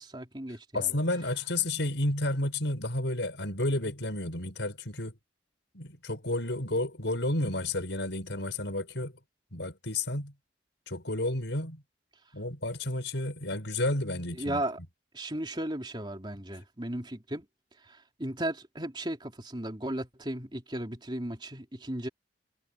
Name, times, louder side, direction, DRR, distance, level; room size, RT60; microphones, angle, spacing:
voice 1, 0.0-0.9 14.3-14.8 15.1-17.4 17.8-22.1, right 1 dB, 25° right, 3.4 m, -35 dB
voice 2, 0.7-5.2 5.7-9.1 9.5-10.3 10.9-11.8 12.3-14.6, left 2 dB, 85° left, 5.0 m, -31 dB
head